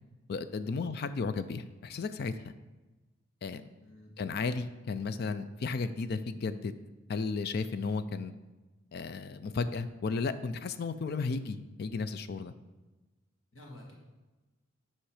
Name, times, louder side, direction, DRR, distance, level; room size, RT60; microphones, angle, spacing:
voice 1, 0.3-2.4 3.4-3.6 4.2-6.7 7.1-8.3 8.9-12.5, left 4 dB, 50° left, 12 dB, 0.4 m, -34 dB
voice 2, 3.8-4.1 13.5-13.9, left 1 dB, 75° left, -1 dB, 1.9 m, -50 dB
8.7 x 5.6 x 4.9 m, 1.2 s
head